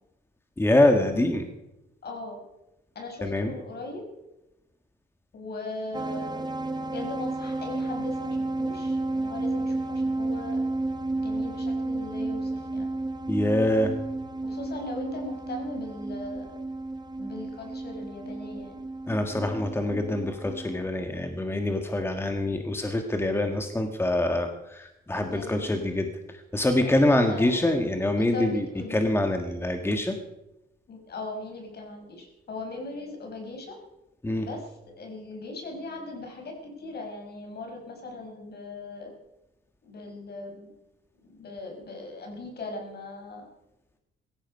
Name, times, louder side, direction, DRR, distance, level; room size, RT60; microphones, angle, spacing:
voice 1, 0.6-1.5 3.2-3.5 13.3-13.9 19.1-30.1 34.2-34.5, left 1 dB, 10° left, 5 dB, 1.6 m, -25 dB
voice 2, 2.0-2.4 3.0-4.0 5.3-6.5 6.8-10.6 11.2-12.9 14.4-16.6 17.2-18.8 25.1-25.8 26.8-27.8 28.2-29.0 30.9-33.8 34.4-39.1 39.8-40.7 41.2-43.5, left 2 dB, 55° left, 2 dB, 5.7 m, -39 dB
sound 1, 5.9-20.8, right 2 dB, 20° right, 1.9 m, -32 dB
17.0 x 14.0 x 5.4 m, 0.93 s
cardioid pair, 90°, 20 cm